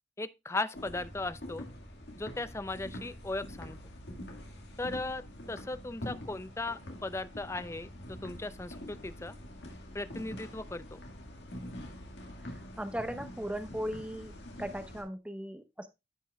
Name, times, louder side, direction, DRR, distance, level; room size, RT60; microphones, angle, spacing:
voice 1, 0.2-1.7 2.2-3.8 4.8-9.3 9.9-11.0, left 2 dB, 15° left, 0.5 m, -37 dB
sound 1, 0.7-15.0, left 1 dB, 80° left, 1.9 m, -45 dB
voice 2, 12.8-14.3 14.6-15.9, equal, 5° right, 0.8 m, -37 dB
14.0 x 5.4 x 2.3 m
head